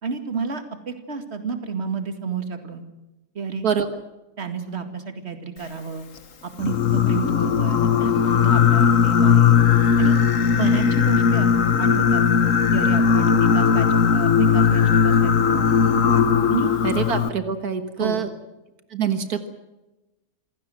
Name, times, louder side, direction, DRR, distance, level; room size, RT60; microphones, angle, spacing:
voice 1, 0.0-2.8 3.3-3.7 4.4-6.1 6.4-9.6 10.0-10.2 10.5-12.2 12.7-15.7 16.5-16.7 18.0-18.2, right 5 dB, 45° right, 8 dB, 2.4 m, -31 dB
Singing, 6.6-17.3, left 7 dB, 60° left, 1.6 m, -18 dB
voice 2, 16.8-18.3 18.9-19.5, right 7 dB, 85° right, 9 dB, 2.0 m, -25 dB
27.0 x 17.0 x 7.7 m, 1.0 s
omnidirectional pair, 1.6 m